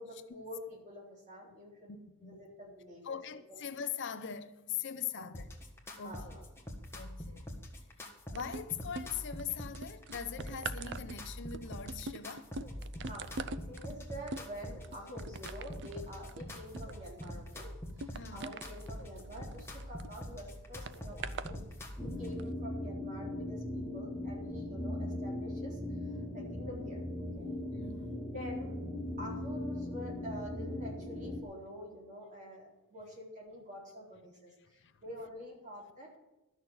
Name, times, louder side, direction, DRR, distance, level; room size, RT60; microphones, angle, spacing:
voice 1, 0.0-1.9 2.2-3.2 3.5-3.6 5.2-5.3 6.0-6.4 13.0-17.7 18.0-21.6 22.0-25.8 26.3-27.0 27.3-27.5 28.3-28.8 29.2-36.2, equal, 35° right, 4.2 m, -47 dB
voice 2, 1.9-2.4 3.0-5.5 6.0-6.3 6.9-7.5 8.3-12.5 18.1-18.5 27.7-28.1 34.8-34.9, left 8 dB, 55° left, 0.7 m, -41 dB
sound 1, 5.3-22.3, left 1 dB, 10° left, 1.6 m, -45 dB
sound 2, 8.4-9.4 9.7-20.1 20.9-21.5 22.3-22.4, right 4 dB, 55° right, 0.5 m, -44 dB
sound 3, 22.0-31.4, left 1 dB, 5° right, 1.4 m, -39 dB
12.5 x 6.6 x 7.7 m
head